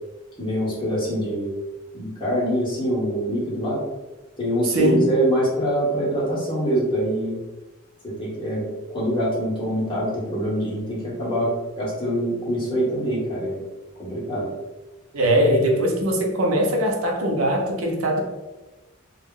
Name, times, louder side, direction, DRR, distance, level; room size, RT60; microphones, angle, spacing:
voice 1, 0.4-1.5 1.9-3.8 4.4-7.4 8.0-13.6 14.0-14.5, equal, 25° left, -6 dB, 0.9 m, -24 dB
voice 2, 4.7-5.1 15.1-18.2, equal, 80° right, 0 dB, 0.6 m, -21 dB
2.2 x 2.0 x 3.5 m, 1.1 s
head